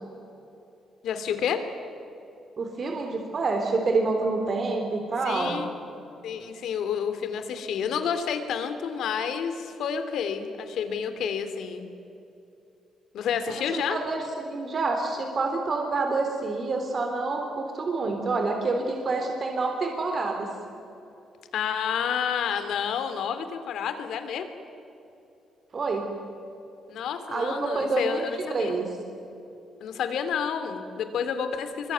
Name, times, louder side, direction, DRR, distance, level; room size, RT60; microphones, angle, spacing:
voice 1, 1.0-1.6 5.2-5.7 6.2-11.9 13.1-14.0 21.5-24.5 26.9-28.7 29.8-31.9, left 7 dB, 75° left, 9 dB, 3.0 m, -29 dB
voice 2, 2.6-5.6 13.5-20.5 25.7-26.1 27.3-28.9, right 3 dB, 45° right, 3 dB, 3.5 m, -27 dB
25.0 x 23.0 x 9.4 m, 2.8 s
cardioid pair, 90°, 0 cm